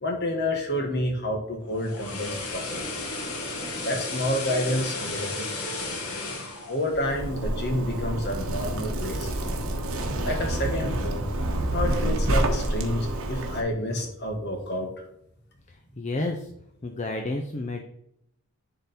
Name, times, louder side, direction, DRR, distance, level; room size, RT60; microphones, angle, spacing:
voice 1, 0.0-3.0 3.8-5.4 5.8-6.0 6.7-9.6 10.2-11.3 11.7-14.9, left 1 dB, 50° left, 2 dB, 1.6 m, -29 dB
sound 1, 1.6-7.8 8.1-8.3, left 2 dB, 90° left, 1.9 m, -34 dB
Zipper (clothing), 6.9-13.6, right 1 dB, 75° right, 1.2 m, -28 dB
voice 2, 15.7-16.5 16.8-17.8, left 2 dB, 30° left, 4 dB, 0.5 m, -31 dB
10.5 x 3.8 x 4.3 m, 0.77 s
head